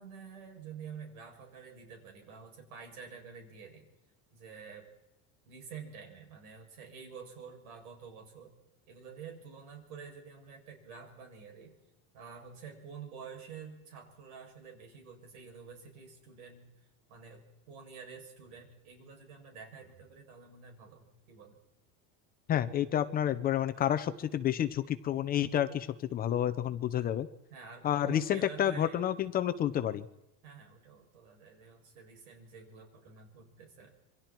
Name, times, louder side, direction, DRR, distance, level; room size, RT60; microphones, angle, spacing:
voice 1, 0.0-3.9 4.3-4.9 5.5-8.5 8.9-11.7 12.1-16.7 17.1-21.6 27.5-29.1 30.4-33.9, right 6 dB, 85° right, 2 dB, 7.7 m, -49 dB
voice 2, 22.5-27.3 27.8-30.1, left 10 dB, 20° left, 10 dB, 0.7 m, -30 dB
28.0 x 24.0 x 4.6 m, 0.95 s
supercardioid pair, 170°, 42 cm